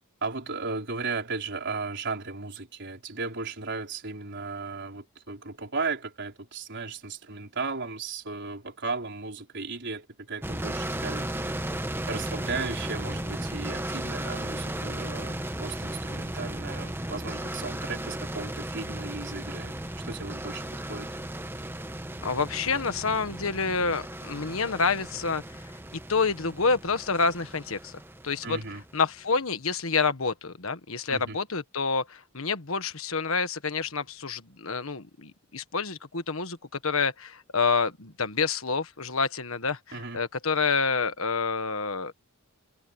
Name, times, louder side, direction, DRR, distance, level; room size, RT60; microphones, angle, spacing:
voice 1, 0.2-11.3 12.1-19.8 20.0-21.1 28.4-28.8 31.1-31.4 39.9-40.2, right 4 dB, 55° right, 4.4 m, -35 dB
sound 1, 10.4-29.1, right 1 dB, 10° right, 1.2 m, -35 dB
voice 2, 22.2-25.4 26.1-28.6 28.9-36.6 36.8-42.1, left 4 dB, 70° left, 1.6 m, -28 dB
head